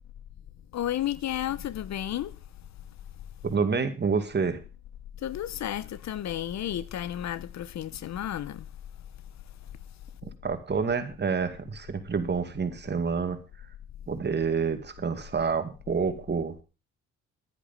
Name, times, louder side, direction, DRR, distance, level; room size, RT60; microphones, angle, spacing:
voice 1, 0.7-2.3 5.2-8.7, left 11 dB, 65° left, 0.9 m, -32 dB
voice 2, 3.4-4.6 10.2-13.4 14.1-16.5, right 5 dB, 35° right, 2.3 m, -28 dB
11.5 x 10.0 x 5.5 m
cardioid pair, 90°, 30 cm